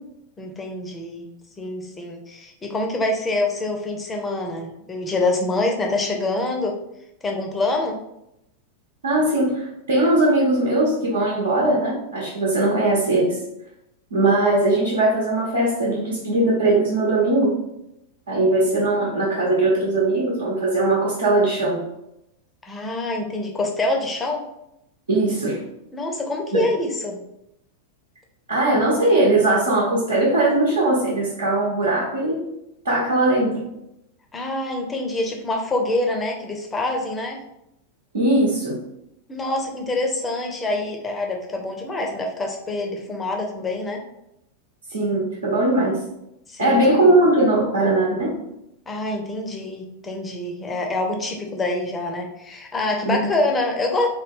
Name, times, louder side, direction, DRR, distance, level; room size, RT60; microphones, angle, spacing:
voice 1, 0.4-1.3 1.6-6.8 7.2-8.0 22.6-24.4 25.9-27.2 34.3-37.4 39.3-44.0 46.5-46.8 48.9-54.1, left 2 dB, 15° left, 2 dB, 0.6 m, -26 dB
voice 2, 9.0-13.4 14.1-17.5 18.3-21.8 25.1-25.6 26.5-26.7 28.5-32.4 32.8-33.6 38.1-38.8 44.9-46.0 46.6-48.3 53.0-53.3, right 2 dB, 70° right, -6 dB, 0.9 m, -20 dB
3.2 x 2.2 x 3.5 m, 0.83 s
figure-of-eight pair, 90°, 0 cm